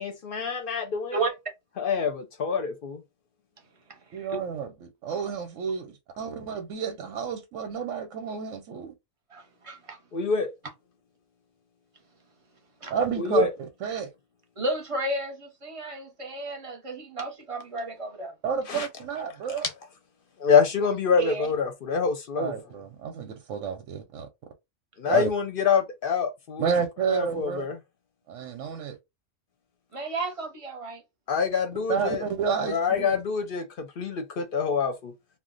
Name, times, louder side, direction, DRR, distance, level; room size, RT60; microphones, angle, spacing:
voice 1, 0.0-1.2 1.8-3.0 10.1-10.5 13.2-13.5 18.7-18.9 20.4-22.5 25.0-26.7 27.1-27.8 31.3-32.2 32.7-35.1, left 6 dB, 60° left, 0.6 m, -26 dB
voice 2, 4.1-8.9 12.9-14.1 18.4-19.6 22.3-24.3 25.1-25.3 26.6-27.7 28.3-29.0 31.9-33.2, right 6 dB, 90° right, 1.0 m, -30 dB
voice 3, 9.3-10.0 12.8-12.9 14.6-18.3 21.2-21.5 29.9-31.0, right 2 dB, 30° right, 0.7 m, -32 dB
2.4 x 2.1 x 3.7 m
omnidirectional pair, 1.3 m